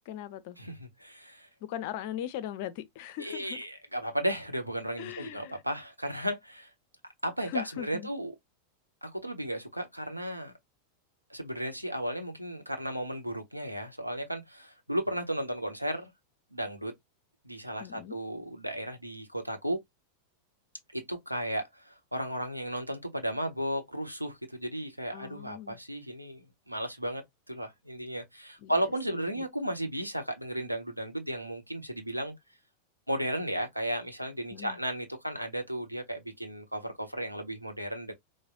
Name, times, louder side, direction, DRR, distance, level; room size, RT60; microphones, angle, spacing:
voice 1, 0.1-0.6 1.6-3.6 5.0-5.6 7.4-8.1 17.8-18.2 25.1-25.8 28.6-29.4 34.5-34.8, left 11 dB, 50° left, 0.6 m, -39 dB
voice 2, 0.6-1.5 3.2-6.7 7.2-8.3 9.0-10.5 11.3-16.1 16.5-16.9 17.4-19.8 20.9-32.3 33.1-38.1, right 1 dB, 90° right, 0.8 m, -34 dB
4.7 x 2.1 x 2.4 m
figure-of-eight pair, 90°, 0 cm